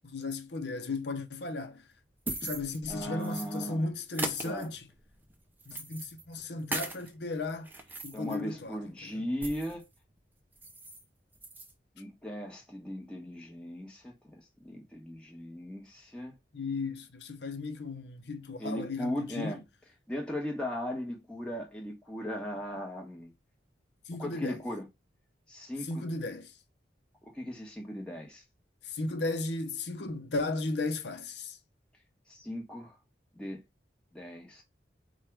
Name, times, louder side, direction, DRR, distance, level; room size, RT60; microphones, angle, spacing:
voice 1, 0.0-1.8 2.4-4.9 5.7-7.7 8.0-9.3 16.5-19.6 24.1-24.6 25.8-26.5 28.8-31.6, left 3 dB, 70° left, 0.8 m, -35 dB
sound 1, 1.9-3.7 4.1-7.1 7.5-9.9 10.2-10.3 10.5-11.0 11.3-11.7, right 2 dB, 10° right, 0.6 m, -40 dB
voice 2, 2.9-3.9 4.4-4.7 8.1-9.8 12.0-16.4 18.6-19.6 20.1-23.3 24.2-24.9 25.5-26.0 27.2-28.4 32.3-32.9 33.3-33.6 34.1-34.6, equal, 5° left, 1.2 m, -38 dB
4.8 x 2.5 x 4.5 m
head